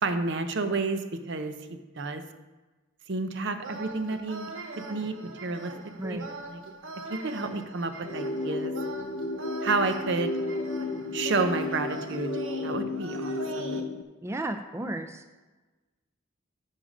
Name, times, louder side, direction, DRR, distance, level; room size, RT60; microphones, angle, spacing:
voice 1, 0.0-2.2 3.1-4.5 4.8-5.7 6.0-6.2 6.5-6.6 7.1-8.7 9.6-10.3 11.1-12.3 12.6-13.8, right 3 dB, 65° right, 9 dB, 0.7 m, -30 dB
sound 1, 3.6-13.8, right 3 dB, 90° right, 1.0 m, -41 dB
sound 2, 8.0-14.0, left 2 dB, 90° left, 0.6 m, -32 dB
voice 2, 14.2-15.2, right 1 dB, 15° right, 8 dB, 0.4 m, -33 dB
10.0 x 5.6 x 5.0 m, 1.2 s
head